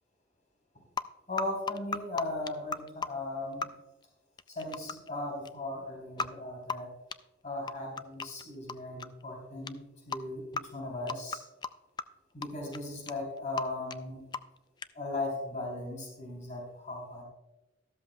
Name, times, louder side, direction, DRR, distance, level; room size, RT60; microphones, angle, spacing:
sound 1, 1.0-1.1 1.4-3.1 3.6-3.7 4.4-5.1 5.4-5.5 6.2-6.3 6.7-6.8 7.1-7.2 7.7-8.4 8.7-9.2 9.7-9.8 10.1-10.2 10.5-10.6 11.1-11.7 12.0-12.1 12.4-12.5 12.7-12.8 13.1-13.2 13.4-13.6 13.9-14.0 14.3-14.6 14.8-14.9, left 5 dB, 20° left, 0.3 m, -34 dB
voice 1, 1.3-3.7 4.5-6.9 7.4-9.8 10.1-11.4 12.3-14.2 14.9-17.2, left 2 dB, 40° left, -1 dB, 3.6 m, -37 dB
13.5 x 13.0 x 2.3 m, 1.0 s
head